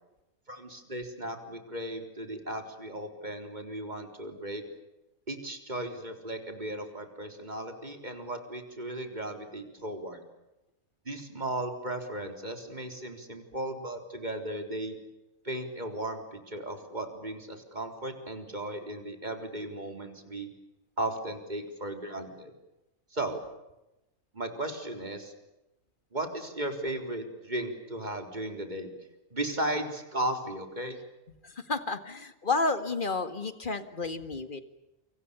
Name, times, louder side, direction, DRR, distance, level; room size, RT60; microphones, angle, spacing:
voice 1, 0.5-4.6 5.3-10.2 11.1-15.0 15.4-20.5 21.0-22.5 23.1-23.4 24.3-25.3 26.1-28.9 29.3-31.0, right 1 dB, 30° right, 5 dB, 4.2 m, -36 dB
voice 2, 31.4-34.6, left 3 dB, 35° left, 10 dB, 2.1 m, -31 dB
29.0 x 26.0 x 7.0 m, 0.94 s
omnidirectional pair, 1.5 m